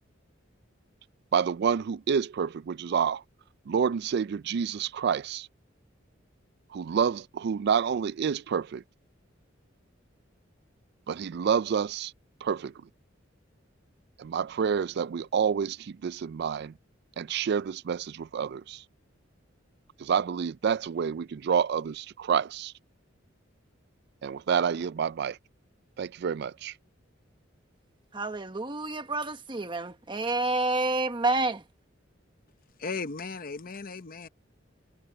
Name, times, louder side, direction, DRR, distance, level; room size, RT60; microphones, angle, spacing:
voice 1, 1.3-3.2 3.7-5.5 6.7-8.8 11.1-12.1 12.4-12.7 14.2-16.7 17.2-18.8 20.0-22.7 24.2-25.4 26.0-26.7, right 7 dB, 55° right, 0.3 m, -28 dB
voice 2, 28.1-31.6, right 2 dB, 25° right, 1.2 m, -29 dB
voice 3, 32.8-34.3, left 4 dB, 45° left, 0.8 m, -36 dB
head